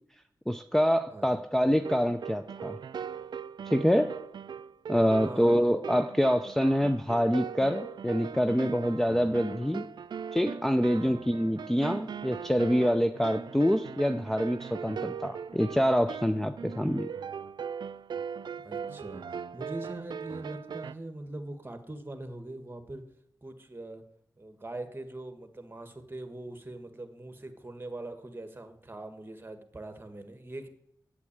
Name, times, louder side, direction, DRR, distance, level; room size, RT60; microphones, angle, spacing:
voice 1, 0.5-2.8 3.7-4.2 4.9-9.9 10.3-17.1, equal, 5° left, 9 dB, 0.6 m, -26 dB
sound 1, 1.7-20.9, right 7 dB, 75° right, 0.4 m, -39 dB
voice 2, 5.2-5.6 10.9-11.2 18.6-19.3 19.5-23.0 23.4-24.0 24.4-30.7, right 2 dB, 30° right, 8 dB, 1.6 m, -42 dB
8.2 x 7.5 x 8.8 m, 0.76 s
cardioid pair, 50°, 8 cm